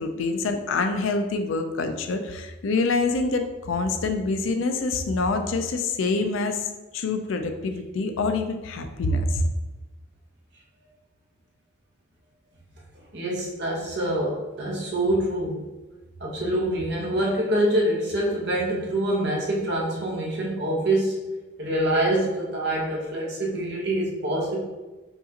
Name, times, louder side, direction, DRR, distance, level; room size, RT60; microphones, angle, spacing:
voice 1, 0.0-9.4, left 3 dB, 75° left, 6 dB, 0.4 m, -26 dB
voice 2, 13.1-15.7 16.2-21.2 21.6-24.6, right 1 dB, 55° right, -3 dB, 0.9 m, -25 dB
5.2 x 2.4 x 2.8 m, 1.1 s
head